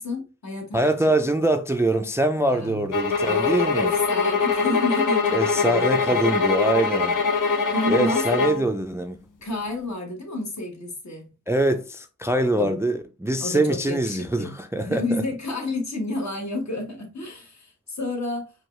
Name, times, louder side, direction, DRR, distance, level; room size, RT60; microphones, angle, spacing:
voice 1, 0.0-1.1 2.3-2.9 3.2-6.2 7.5-8.2 9.4-11.3 12.5-12.7 13.4-14.5 14.8-18.5, left 2 dB, 60° left, 1.3 m, -30 dB
voice 2, 0.7-3.9 5.3-7.2 7.9-9.2 11.5-15.2, right 1 dB, 10° right, 0.3 m, -24 dB
sound 1, 2.9-8.7, left 5 dB, 85° left, 0.7 m, -23 dB
4.6 x 2.3 x 3.1 m
wide cardioid pair, 85°, 31 cm